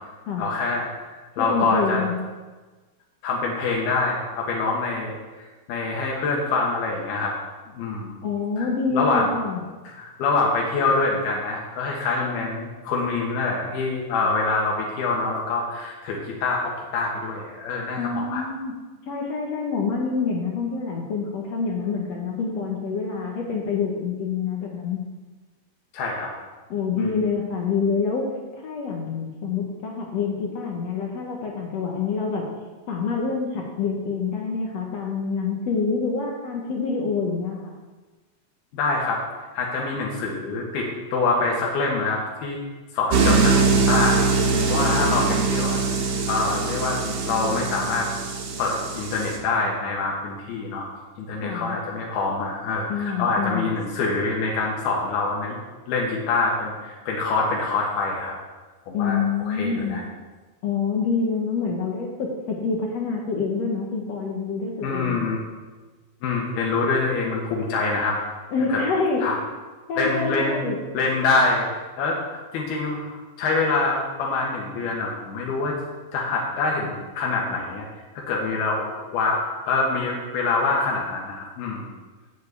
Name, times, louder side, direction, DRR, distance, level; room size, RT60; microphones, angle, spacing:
voice 1, 0.4-2.0 3.2-7.3 7.7-8.2 8.6-9.3 9.8-18.4 25.9-26.3 27.0-27.1 38.7-39.2 39.5-42.6 42.9-47.0 47.3-48.1 48.6-50.9 51.2-55.6 55.9-58.3 58.9-60.0 64.8-65.4 66.2-68.2 68.7-68.8 69.2-69.4 70.0-70.6 70.9-71.7 72.0-72.2 72.5-75.7 76.1-77.9 78.1-81.9, left 3 dB, 85° left, -2 dB, 3.3 m, -25 dB
voice 2, 1.4-2.1 8.2-9.6 18.0-18.7 19.1-25.0 26.7-28.3 28.5-32.5 32.9-37.7 44.9-45.1 51.4-51.8 52.9-53.7 58.9-60.0 60.6-65.3 68.5-69.2 69.9-70.8, left 5 dB, 65° left, 0 dB, 1.7 m, -26 dB
sound 1, 43.1-49.4, right 4 dB, 70° right, 2.9 m, -22 dB
7.4 x 7.1 x 8.3 m, 1.3 s
omnidirectional pair, 4.4 m